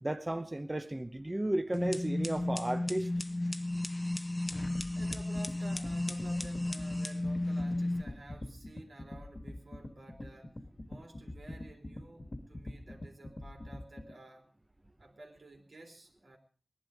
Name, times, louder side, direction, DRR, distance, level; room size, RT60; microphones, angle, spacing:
voice 1, 0.0-3.1, right 1 dB, 20° right, 7 dB, 0.9 m, -34 dB
sound 1, 1.7-8.0, left 1 dB, 25° left, 0.9 m, -34 dB
sound 2, 4.6-14.1, left 1 dB, 45° left, 1.7 m, -45 dB
voice 2, 5.0-10.6 10.9-14.5 15.0-16.4, right 2 dB, 75° right, 2 dB, 3.4 m, -52 dB
19.0 x 11.5 x 5.0 m, 0.41 s
wide cardioid pair, 65°, 0 cm